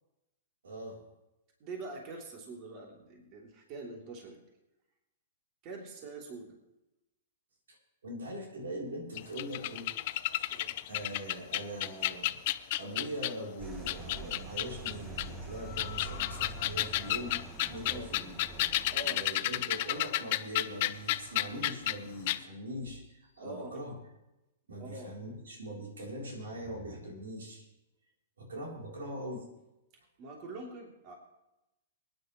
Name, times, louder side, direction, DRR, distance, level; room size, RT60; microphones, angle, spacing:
voice 1, 0.6-1.0 7.7-7.8 8.0-9.9 10.9-12.4 12.8-17.4 17.7-18.3 19.1-24.0 24.7-27.7 28.4-29.4, right 1 dB, 80° right, -1 dB, 3.6 m, -41 dB
voice 2, 1.6-4.4 5.6-6.6 10.5-10.7 17.8-18.1 18.9-19.3 23.4-23.8 24.8-25.1 30.2-31.1, right 2 dB, 40° right, 0 dB, 3.2 m, -44 dB
sound 1, 9.2-13.4 13.9-15.3 15.7-22.0 22.3-22.4, left 16 dB, 50° left, 0.5 m, -32 dB
sound 2, 13.6-19.2, right 3 dB, 20° right, 1.1 m, -45 dB
23.0 x 10.5 x 3.2 m, 0.93 s
hypercardioid pair, 115°, 0 cm